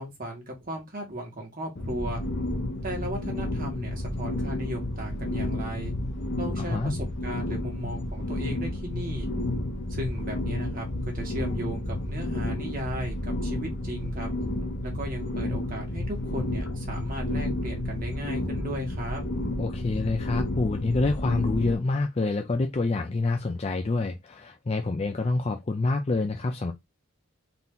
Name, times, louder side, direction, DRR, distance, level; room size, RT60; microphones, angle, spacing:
voice 1, 0.0-2.2 2.8-5.9 6.4-9.3 9.9-14.3 14.8-19.2, right 1 dB, 40° right, 1.6 m, -36 dB
sound 1, 1.8-21.8, left 1 dB, 55° left, 0.8 m, -31 dB
voice 2, 6.6-6.9 19.6-26.7, left 3 dB, 30° left, 0.4 m, -27 dB
4.0 x 2.8 x 3.7 m
head